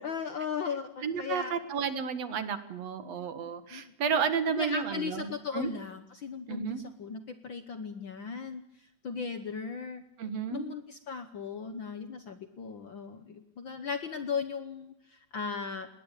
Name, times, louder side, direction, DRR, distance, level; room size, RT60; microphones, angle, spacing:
voice 1, 0.0-1.6 3.7-3.8 4.5-8.6 9.0-10.0 10.5-15.9, left 5 dB, 55° left, 10 dB, 1.4 m, -37 dB
voice 2, 1.0-5.7 6.5-6.8 10.2-10.7, right 6 dB, 60° right, 11 dB, 2.7 m, -32 dB
20.5 x 19.0 x 8.4 m, 0.83 s
omnidirectional pair, 3.4 m